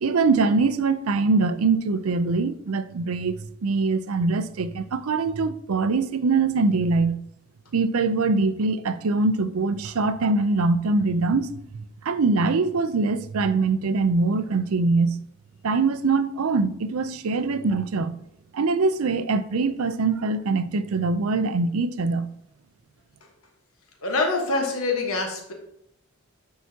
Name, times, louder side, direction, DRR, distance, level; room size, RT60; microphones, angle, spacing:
voice 1, 0.0-7.2 7.7-15.2 15.6-18.2 18.5-22.3, right 3 dB, 85° right, 0.5 m, -23 dB
voice 2, 24.0-25.5, left 3 dB, 85° left, 1.3 m, -25 dB
10.0 x 4.8 x 2.8 m
head